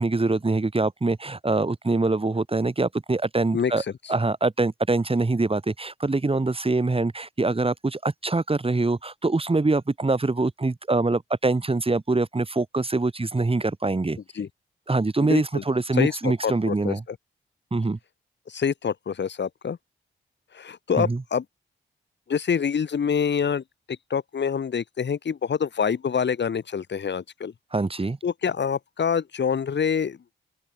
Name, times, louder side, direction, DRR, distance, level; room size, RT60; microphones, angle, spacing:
voice 1, 0.0-3.8 4.1-14.2 14.9-17.0 17.7-18.0 21.0-21.2 27.7-28.2, right 3 dB, 30° right, 3.4 m, -24 dB
voice 2, 3.5-3.8 14.3-14.5 15.2-15.6 15.9-17.2 18.5-19.8 20.5-21.4 22.3-27.5 28.2-30.2, left 7 dB, 65° left, 4.6 m, -26 dB
open air
supercardioid pair, 50°, 20 cm